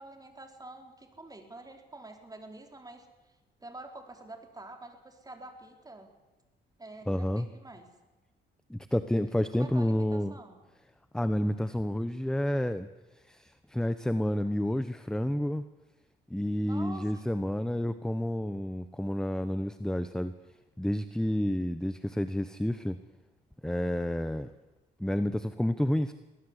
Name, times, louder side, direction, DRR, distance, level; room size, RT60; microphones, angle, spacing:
voice 1, 0.0-3.1 3.6-6.1 6.8-7.9 9.5-10.6 16.6-17.2, right 2 dB, 20° right, 4 dB, 4.4 m, -47 dB
voice 2, 7.1-7.5 8.7-10.3 11.1-12.9 13.3-15.6 16.3-20.3 20.8-23.0 23.6-24.5 25.0-26.1, left 1 dB, 5° left, 11 dB, 1.0 m, -30 dB
23.5 x 18.0 x 8.3 m, 1.1 s
cardioid pair, 90°, 20 cm